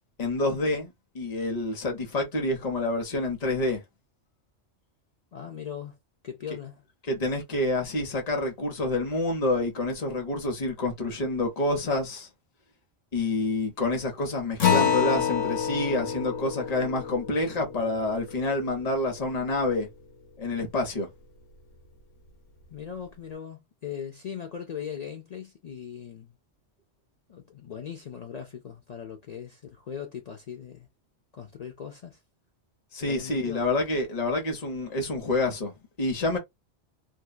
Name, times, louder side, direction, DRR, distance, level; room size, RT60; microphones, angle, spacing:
voice 1, 0.2-3.8 7.1-12.3 13.1-19.9 20.4-21.1 32.9-36.4, left 2 dB, 40° left, 0.9 m, -28 dB
voice 2, 5.3-6.0 6.2-6.8 22.7-26.3 27.3-30.9 31.3-32.2 32.9-33.7, left 8 dB, 60° left, 0.4 m, -39 dB
Acoustic guitar, 14.6-19.5, left 8 dB, 90° left, 1.1 m, -28 dB
2.7 x 2.2 x 2.2 m
omnidirectional pair, 1.2 m